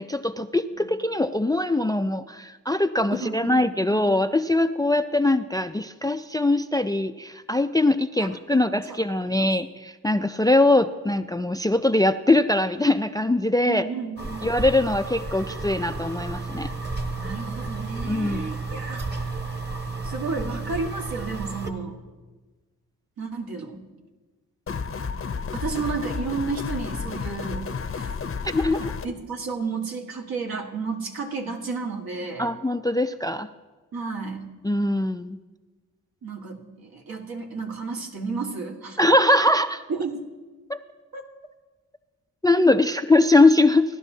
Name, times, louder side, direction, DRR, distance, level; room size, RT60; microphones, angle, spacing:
voice 1, 0.0-13.9 14.4-16.7 18.1-18.4 28.4-28.9 32.4-33.5 34.6-35.4 39.0-39.8 40.7-40.8 42.4-43.8, left 2 dB, 10° left, 11 dB, 0.3 m, -22 dB
voice 2, 3.2-4.2 8.2-9.0 9.3-9.5 13.6-14.4 17.2-19.3 20.0-21.9 23.2-23.8 25.5-27.6 27.9-28.1 28.5-28.7 29.0-32.5 33.9-34.4 36.2-39.0 39.9-40.2 41.1-41.2, right 4 dB, 70° right, 1 dB, 1.7 m, -32 dB
sound 1, 14.2-21.7, right 3 dB, 30° right, 1.3 m, -32 dB
sound 2, 24.7-29.1, left 5 dB, 35° left, 0.7 m, -31 dB
17.0 x 11.5 x 2.8 m, 1.3 s
cardioid pair, 60°, 37 cm